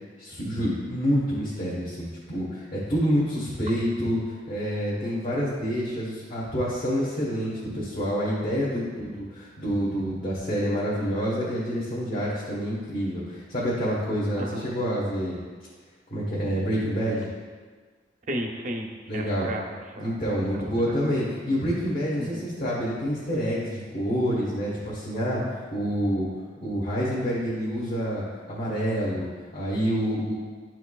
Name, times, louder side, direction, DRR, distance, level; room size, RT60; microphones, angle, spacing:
voice 1, 0.2-15.4 16.1-17.3 19.1-19.5 20.0-25.4 25.7-26.3 26.6-30.3, equal, 45° left, -8 dB, 1.2 m, -27 dB
voice 2, 14.4-14.7 18.3-20.1 20.5-21.0 22.2-22.5, right 1 dB, 45° right, 2 dB, 0.7 m, -34 dB
11.0 x 4.6 x 2.3 m, 1.5 s
head